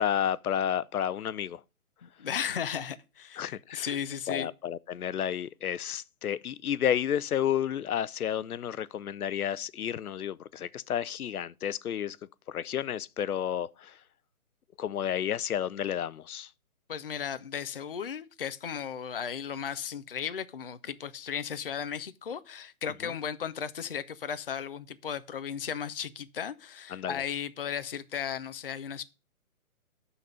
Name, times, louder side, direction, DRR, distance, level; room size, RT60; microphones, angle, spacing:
voice 1, 0.0-1.6 3.4-4.0 4.3-12.2 12.5-14.0 14.8-16.5 23.0-23.1 26.9-27.2, left 9 dB, 85° left, 0.6 m, -31 dB
voice 2, 2.0-4.5 16.9-29.0, left 8 dB, 40° left, 0.5 m, -35 dB
11.5 x 4.1 x 5.1 m
hypercardioid pair, 165°, 43 cm